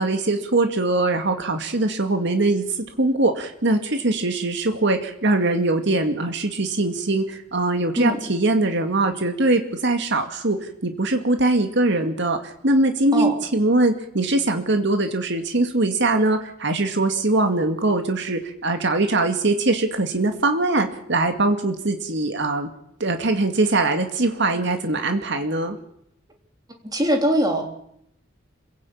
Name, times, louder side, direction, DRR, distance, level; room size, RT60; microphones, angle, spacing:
voice 1, 0.0-2.6 3.0-10.6 10.8-22.7 23.0-25.8, right 2 dB, 65° right, 6 dB, 2.3 m, -22 dB
voice 2, 26.9-27.6, equal, 20° right, 3 dB, 3.7 m, -21 dB
27.0 x 16.5 x 8.8 m, 0.76 s
head